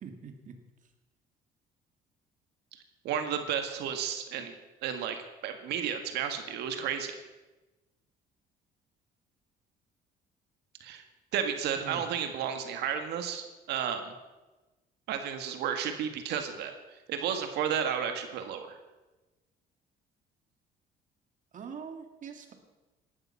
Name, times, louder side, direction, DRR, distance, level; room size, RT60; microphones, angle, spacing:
voice 1, 0.0-0.5 11.8-12.0 21.5-22.5, right 6 dB, 50° right, 5 dB, 2.4 m, -43 dB
voice 2, 3.0-4.6 4.8-7.1 10.8-11.0 11.3-14.1 15.1-16.7 17.1-18.8, right 8 dB, 80° right, 6 dB, 1.9 m, -32 dB
17.0 x 12.0 x 5.9 m, 1.1 s
cardioid pair, 110°, 17 cm